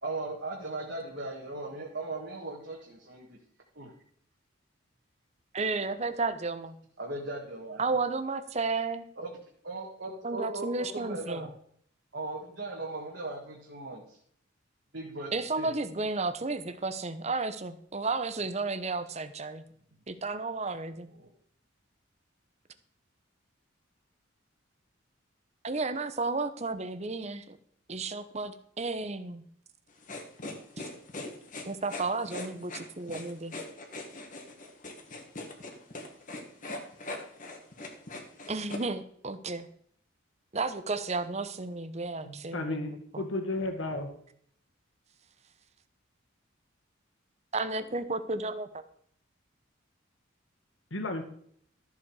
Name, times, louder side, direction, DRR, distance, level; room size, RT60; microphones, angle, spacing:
voice 1, 0.0-3.4 3.7-3.9 7.0-7.8 9.2-9.3 9.6-11.5 12.1-14.2 14.9-15.7 21.2-21.3, right 2 dB, 55° right, -2 dB, 1.8 m, -38 dB
voice 2, 5.5-6.8 7.8-9.1 10.2-11.5 15.3-19.6 20.1-21.1 25.6-27.6 27.9-29.4 30.8-30.9 31.7-33.5 38.5-39.7 40.5-42.9 43.1-43.3 47.5-48.8, right 3 dB, 35° right, 11 dB, 0.8 m, -33 dB
sound 1, 30.0-38.8, left 2 dB, 40° left, 1.7 m, -40 dB
voice 3, 42.3-44.1 50.9-51.2, left 2 dB, 70° left, 4 dB, 1.9 m, -33 dB
13.5 x 7.3 x 4.8 m, 0.64 s
head